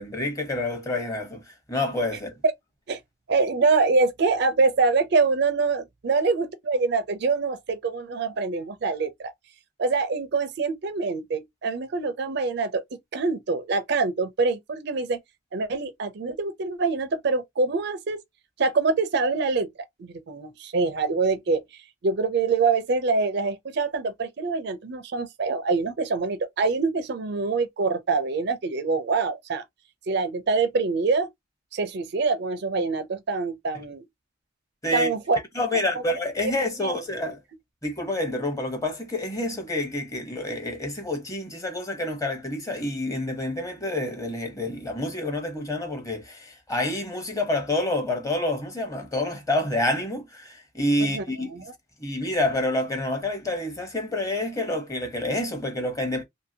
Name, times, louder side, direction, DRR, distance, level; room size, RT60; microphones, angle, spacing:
voice 1, 0.0-1.4 1.7-2.3 34.8-35.1 35.6-37.4 37.8-51.5 52.0-56.2, left 1 dB, 15° left, 0.9 m, -28 dB
voice 2, 3.3-9.3 9.8-12.8 13.1-15.2 15.5-18.2 18.6-19.7 20.0-21.6 22.0-29.6 30.1-31.3 31.7-34.0 34.9-35.4 36.4-36.5 36.8-36.9 51.1-51.2 51.5-51.7, right 4 dB, 55° right, 0.4 m, -25 dB
2.7 x 2.7 x 2.7 m
head